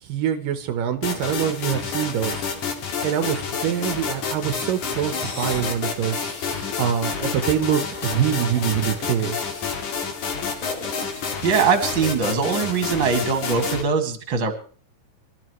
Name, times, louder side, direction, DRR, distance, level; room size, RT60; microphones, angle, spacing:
voice 1, 0.0-2.4 3.0-6.3 6.8-9.4, right 9 dB, 75° right, 9 dB, 2.6 m, -24 dB
sound 1, 1.0-13.8, left 5 dB, 60° left, 3.4 m, -29 dB
sound 2, 5.1-5.7 6.1-6.7 7.6-8.8 9.1-9.8 10.2-11.7, left 2 dB, 25° left, 2.7 m, -40 dB
voice 2, 11.2-14.5, right 5 dB, 40° right, 6 dB, 2.6 m, -22 dB
25.0 x 13.5 x 3.1 m, 0.42 s
omnidirectional pair, 4.0 m